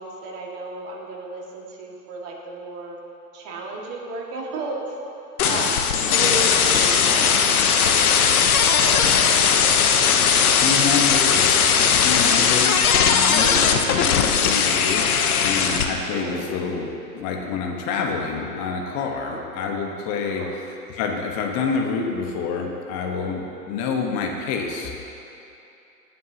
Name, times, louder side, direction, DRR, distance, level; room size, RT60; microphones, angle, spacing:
voice 1, 0.0-3.0 3.3-4.8 5.4-7.3 7.8-8.3 8.8-9.7 13.4-13.8 14.1-14.5 16.0-16.7 19.2-19.4 20.3-20.5, right 3 dB, 30° right, -2 dB, 2.2 m, -34 dB
sound 1, 5.4-15.8, left 7 dB, 60° left, 1.2 m, -18 dB
voice 2, 10.6-20.4 20.9-25.0, left 5 dB, 30° left, 1 dB, 1.3 m, -28 dB
19.5 x 9.4 x 3.0 m, 2.8 s
hypercardioid pair, 120°, 49 cm